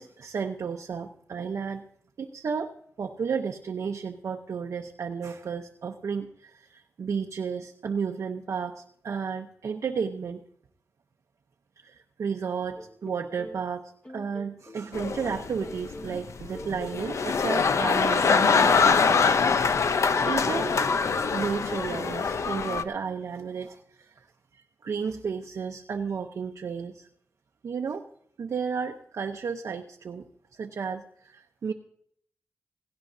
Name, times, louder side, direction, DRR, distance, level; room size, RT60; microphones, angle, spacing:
voice 1, 0.0-1.8 2.2-10.4 11.8-19.4 20.2-20.8 21.3-24.2 24.5-27.1 27.6-28.1 28.4-30.3 30.5-31.7, right 6 dB, 75° right, 3 dB, 0.8 m, -33 dB
sound 1, 12.8-13.6 14.0-16.3 16.5-17.1, equal, 25° left, 1.7 m, -44 dB
sound 2, 14.9-22.8, left 5 dB, 70° left, 0.7 m, -24 dB
17.0 x 16.5 x 2.7 m, 0.65 s
cardioid pair, 75°, 5 cm